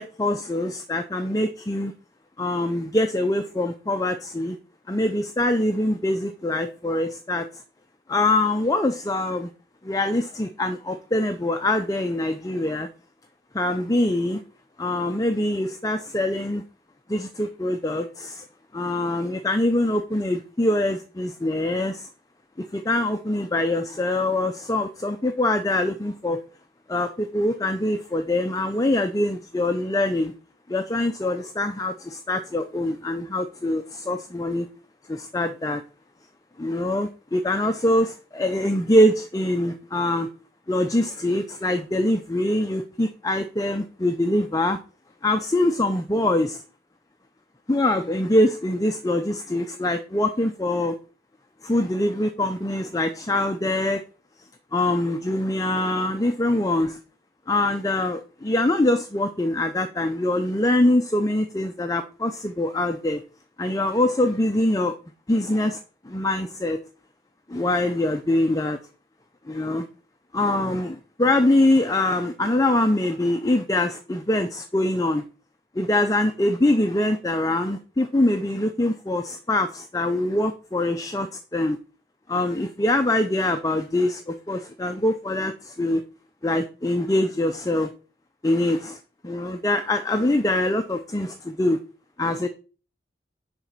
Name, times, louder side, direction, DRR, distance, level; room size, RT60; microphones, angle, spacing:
voice 1, 0.0-1.9 2.4-4.6 4.9-7.5 8.1-9.5 9.8-12.9 13.5-14.4 14.8-16.6 17.1-18.4 18.7-22.1 22.7-26.4 26.9-30.3 30.7-34.7 35.1-35.8 36.6-40.3 40.7-44.8 45.2-46.6 47.7-50.9 51.6-54.0 54.7-57.0 57.5-63.2 63.6-64.9 65.3-65.8 66.1-66.8 67.5-68.8 69.5-69.8 70.3-75.2 75.8-81.8 82.3-86.0 86.4-87.9 88.4-89.0 89.2-91.8 92.2-92.5, left 1 dB, 20° left, 0.5 m, -24 dB
10.5 x 4.1 x 6.0 m
head